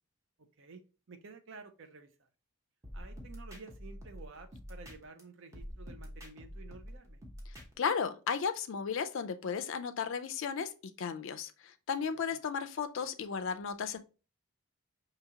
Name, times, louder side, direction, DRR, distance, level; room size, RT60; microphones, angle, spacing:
voice 1, 0.6-2.3 2.9-7.2 12.2-12.4, right 4 dB, 55° right, 0.5 m, -52 dB
sound 1, 2.8-5.2 5.5-7.9, equal, 15° right, 0.8 m, -46 dB
voice 2, 7.5-14.0, left 6 dB, 55° left, 0.4 m, -35 dB
4.8 x 2.8 x 2.8 m
head